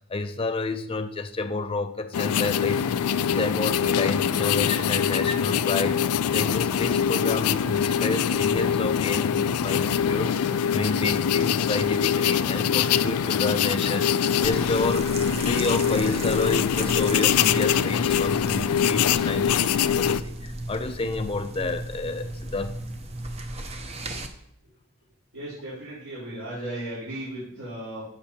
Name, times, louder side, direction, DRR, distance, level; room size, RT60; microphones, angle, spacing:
voice 1, 0.1-22.8, left 3 dB, 25° left, 9 dB, 0.5 m, -30 dB
sound 1, 2.1-20.2, left 8 dB, 80° left, 0.4 m, -23 dB
sound 2, 14.4-24.3, right 2 dB, 30° right, 0.7 m, -35 dB
voice 2, 25.3-28.0, right 1 dB, 65° right, -9 dB, 4.1 m, -35 dB
15.0 x 5.9 x 2.8 m, 0.73 s
head